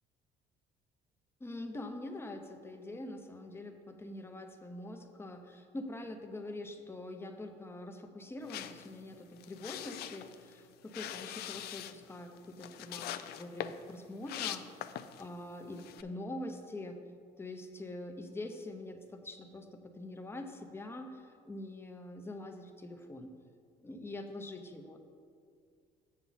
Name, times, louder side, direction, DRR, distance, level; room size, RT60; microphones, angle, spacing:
voice 1, 1.4-14.9 15.2-17.0 17.4-23.4 23.8-25.0, left 1 dB, 15° left, 5 dB, 0.7 m, -44 dB
sound 1, 8.4-15.3 15.7-16.0, left 11 dB, 70° left, 0.4 m, -43 dB
7.2 x 7.0 x 4.1 m, 2.2 s
cardioid pair, 110°, 17 cm